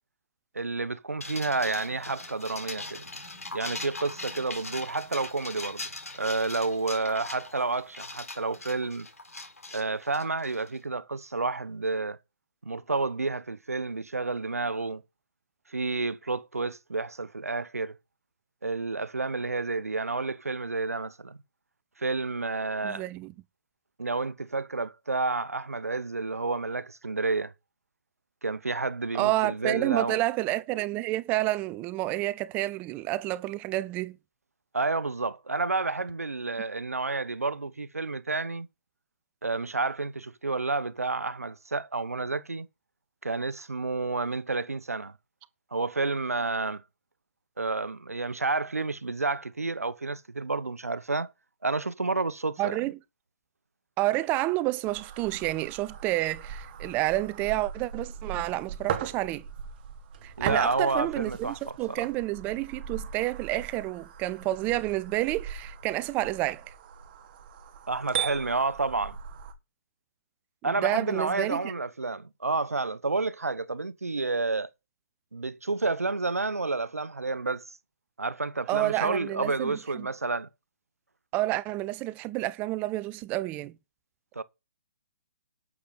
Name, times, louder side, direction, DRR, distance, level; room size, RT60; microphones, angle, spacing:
voice 1, 0.5-3.0 3.5-5.9 6.1-9.1 9.7-12.2 12.6-15.0 15.7-18.0 18.6-21.4 22.0-23.1 24.0-27.5 28.4-30.2 34.7-38.7 39.4-42.7 43.2-45.1 45.7-46.8 47.6-51.3 51.6-52.8 60.4-62.1 67.9-69.2 70.6-74.7 75.3-77.6 78.2-80.5 84.3-84.4, right 3 dB, 80° right, 0.9 m, -30 dB
sound 1, 1.2-10.8, left 2 dB, 80° left, 3.7 m, -41 dB
voice 2, 22.8-23.3 29.1-34.2 52.6-53.0 54.0-59.4 60.2-66.6 70.6-71.7 78.7-80.1 81.3-83.8, right 17 dB, 20° right, 0.8 m, -29 dB
sound 2, 54.9-69.5, right 8 dB, 40° right, 2.0 m, -39 dB
11.5 x 7.2 x 4.4 m
figure-of-eight pair, 130°, 8 cm